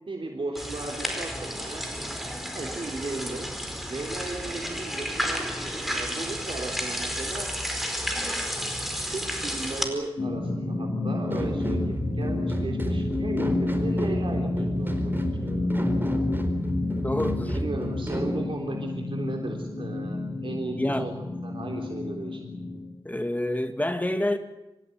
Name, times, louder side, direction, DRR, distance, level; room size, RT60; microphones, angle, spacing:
voice 1, 0.1-1.8 2.5-3.5 3.9-7.5 9.1-15.7 17.5-22.5, right 2 dB, 70° right, 1 dB, 3.6 m, -36 dB
sound 1, 0.5-9.9, equal, ahead, 4.6 m, -32 dB
sound 2, 10.2-22.9, left 2 dB, 60° left, 4.7 m, -30 dB
sound 3, 11.3-18.4, right 1 dB, 20° right, 4.4 m, -31 dB
voice 2, 16.9-17.6 20.8-21.1 23.0-24.4, left 1 dB, 20° left, 7 dB, 2.2 m, -28 dB
26.5 x 15.5 x 9.3 m, 0.97 s
wide cardioid pair, 70°, 9 cm